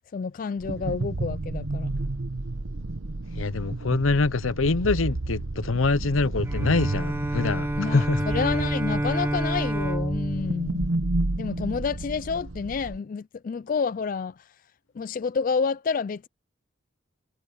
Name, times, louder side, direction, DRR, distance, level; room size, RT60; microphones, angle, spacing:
voice 1, 0.1-2.0 7.8-10.8 11.4-14.4 15.0-16.3, left 5 dB, 45° left, 0.3 m, -29 dB
sound 1, 0.6-13.0, right 2 dB, 85° right, 1.0 m, -31 dB
voice 2, 3.3-8.2, left 3 dB, 90° left, 0.8 m, -25 dB
Bowed string instrument, 6.5-11.7, right 1 dB, 10° right, 1.3 m, -29 dB
head